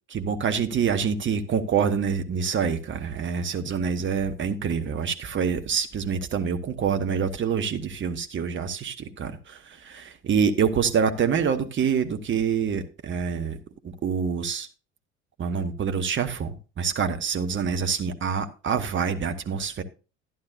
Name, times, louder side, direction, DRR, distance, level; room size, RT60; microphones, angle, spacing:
voice 1, 0.1-13.6 13.8-14.7 15.4-19.8, right 6 dB, 30° right, 1.3 m, -26 dB
11.5 x 11.0 x 2.6 m
figure-of-eight pair, 60°, 38 cm